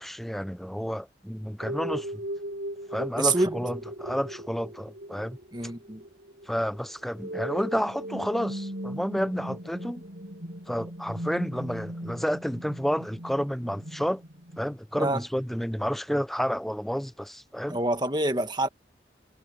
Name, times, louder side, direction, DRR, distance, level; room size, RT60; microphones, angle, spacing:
voice 1, 0.0-2.2 2.9-5.4 6.5-10.0 10.7-14.2 14.6-17.8, equal, ahead, 0.7 m, -30 dB
sound 1, 1.6-14.8, right 1 dB, 70° right, 7.7 m, -38 dB
voice 2, 3.2-3.6 5.5-6.0 15.0-15.2 17.7-18.7, right 2 dB, 25° right, 1.5 m, -26 dB
head